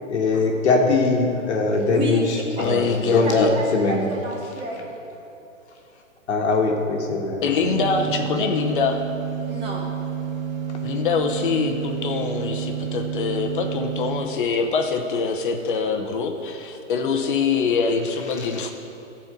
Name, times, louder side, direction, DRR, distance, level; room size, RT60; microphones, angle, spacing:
voice 1, 0.1-4.0 6.3-7.4, left 3 dB, 55° left, 1 dB, 1.5 m, -21 dB
voice 2, 1.9-2.9 3.2-4.9 9.5-9.8, equal, 15° right, -2 dB, 1.3 m, -31 dB
voice 3, 2.6-3.5 7.4-9.0 10.8-18.7, left 5 dB, 40° left, 4 dB, 0.9 m, -24 dB
sound 1, 7.6-14.2, right 8 dB, 85° right, 1.8 m, -29 dB
13.0 x 4.4 x 7.8 m, 3.0 s
hypercardioid pair, 155°, 39 cm